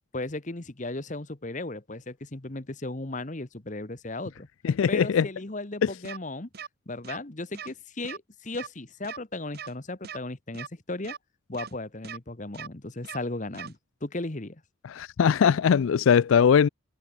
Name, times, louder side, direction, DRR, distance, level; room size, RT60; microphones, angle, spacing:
voice 1, 0.1-4.5 4.9-6.5 6.9-11.2 11.5-14.6, left 2 dB, 35° left, 1.3 m, -36 dB
voice 2, 4.6-5.3 5.8-5.9 14.9-16.7, left 7 dB, 80° left, 0.4 m, -21 dB
sound 1, 6.0-6.2 6.5-6.7 7.0-7.2 7.5-7.7 8.0-8.2 8.5-8.7 9.0-9.2 9.5-9.7 10.0-10.2 10.5-10.7 11.0-11.2 11.5-11.7 12.0-12.2 12.5-12.7 13.0-13.2 13.5-13.7, right 7 dB, 50° right, 1.4 m, -39 dB
head